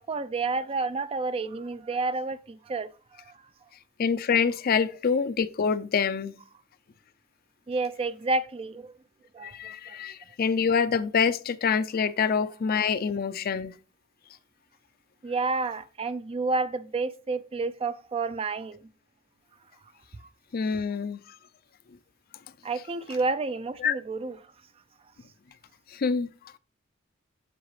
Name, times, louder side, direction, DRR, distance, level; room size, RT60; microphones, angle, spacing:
voice 1, 0.0-2.9 7.7-8.9 9.3-10.0 15.2-18.8 22.6-24.4, right 3 dB, 30° right, 0.4 m, -30 dB
voice 2, 4.0-6.3 9.4-13.8 20.5-21.4 23.8-24.0 25.9-26.3, left 6 dB, 45° left, 0.4 m, -26 dB
8.1 x 7.5 x 3.1 m
head